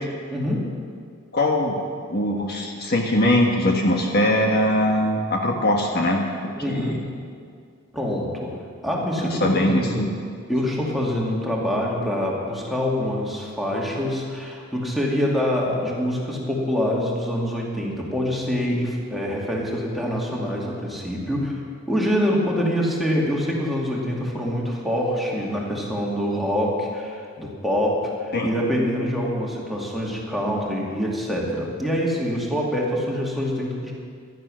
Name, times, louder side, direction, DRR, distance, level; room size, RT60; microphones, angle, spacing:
voice 1, 0.3-0.8 6.6-7.2 7.9-8.5 8.8-10.0 10.5-21.6 21.9-33.9, equal, ahead, -4 dB, 2.5 m, -25 dB
voice 2, 1.3-1.8 2.1-6.2 6.7-6.9 9.2-10.2 28.3-28.5, left 1 dB, 50° left, 1 dB, 1.4 m, -21 dB
15.5 x 12.5 x 6.4 m, 2.2 s
head